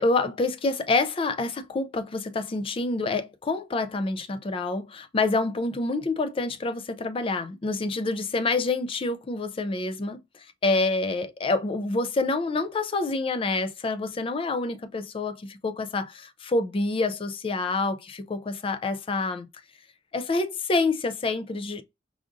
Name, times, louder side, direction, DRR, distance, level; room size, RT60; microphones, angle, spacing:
voice 1, 0.0-19.5 20.1-21.8, left 3 dB, 30° left, 0.4 m, -27 dB
4.8 x 2.4 x 2.5 m
head